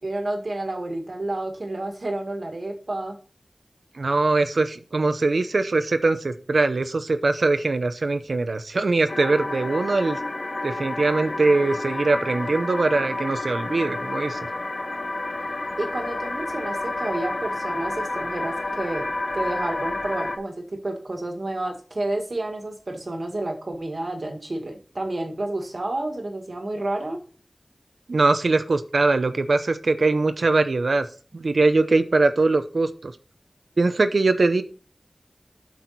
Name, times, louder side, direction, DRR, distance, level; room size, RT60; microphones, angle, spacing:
voice 1, 0.0-3.2 15.8-27.2, right 2 dB, 65° right, 4 dB, 1.8 m, -30 dB
voice 2, 4.0-10.2 10.6-14.4 28.1-31.1 31.3-33.1 33.8-34.6, right 3 dB, 90° right, 9 dB, 0.7 m, -22 dB
sound 1, 9.1-20.4, left 2 dB, 60° left, 1.3 m, -30 dB
8.1 x 6.3 x 4.2 m, 0.38 s
wide cardioid pair, 60°, 0 cm